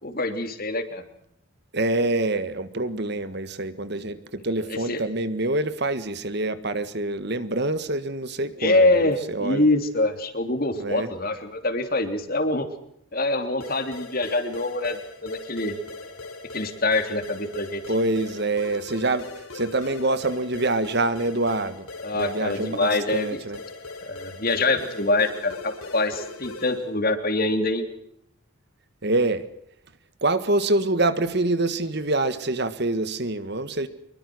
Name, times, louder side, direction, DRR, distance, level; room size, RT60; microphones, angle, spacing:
voice 1, 0.0-1.1 4.9-5.0 8.6-12.7 13.1-15.7 16.5-17.8 22.0-23.4 24.0-27.8, left 2 dB, 45° left, 8 dB, 3.3 m, -24 dB
voice 2, 1.7-9.7 10.7-11.1 17.9-23.6 29.0-29.5 30.2-33.9, right 2 dB, 50° right, 13 dB, 1.7 m, -26 dB
sound 1, 13.6-26.9, left 3 dB, 85° left, 4.5 m, -40 dB
25.5 x 23.0 x 6.3 m, 0.75 s
head